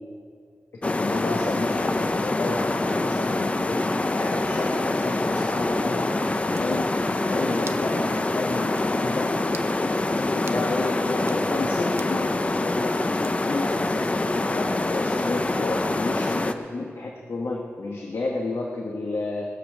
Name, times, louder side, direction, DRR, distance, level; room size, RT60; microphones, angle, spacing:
voice 1, 0.7-9.3 9.7-13.0 13.4-19.5, left 2 dB, 70° left, 0 dB, 1.3 m, -31 dB
sound 1, 0.8-16.5, left 2 dB, 25° left, 0.6 m, -25 dB
sound 2, 6.5-6.7 7.7-7.9 8.3-8.4 8.8-8.9 9.5-9.7 10.5-10.7 11.2-11.4 12.0-12.2 13.2-13.6, right 5 dB, 65° right, 0.6 m, -42 dB
20.5 x 6.9 x 6.7 m, 2.5 s
wide cardioid pair, 100°, 5 cm